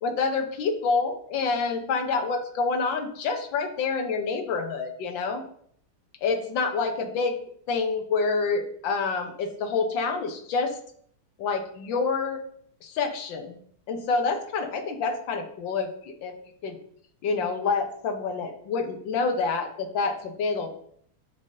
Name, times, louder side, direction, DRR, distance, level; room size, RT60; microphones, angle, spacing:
voice 1, 0.0-5.4 6.2-7.4 7.7-10.8 11.4-12.4 12.8-13.6 13.9-16.3 16.6-16.8 17.2-20.8, left 4 dB, 65° left, 5 dB, 1.6 m, -27 dB
10.0 x 5.3 x 2.7 m, 0.64 s
omnidirectional pair, 2.3 m